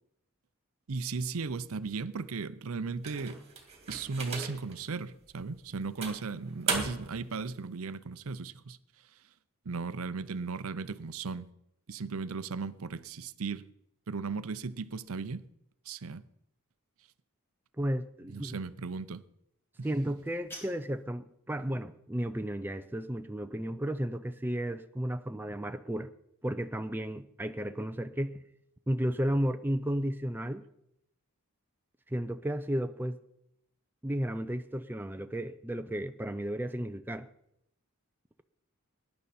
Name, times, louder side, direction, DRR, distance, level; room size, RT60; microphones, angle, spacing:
voice 1, 0.9-3.4 3.9-8.8 9.7-11.5 11.9-13.6 14.1-15.4 15.9-16.2 18.3-19.2 19.8-19.9, right 4 dB, 70° right, 0.6 m, -36 dB
sound 1, 3.0-4.8 5.3-5.4 6.0-7.2, right 4 dB, 30° right, 2.7 m, -36 dB
voice 2, 17.8-18.6 19.8-26.1 26.4-28.4 28.9-30.7 32.1-33.2 34.0-37.3, right 1 dB, 10° right, 0.4 m, -33 dB
sound 2, 20.1-21.1, equal, 10° left, 4.1 m, -49 dB
19.5 x 10.5 x 4.2 m
head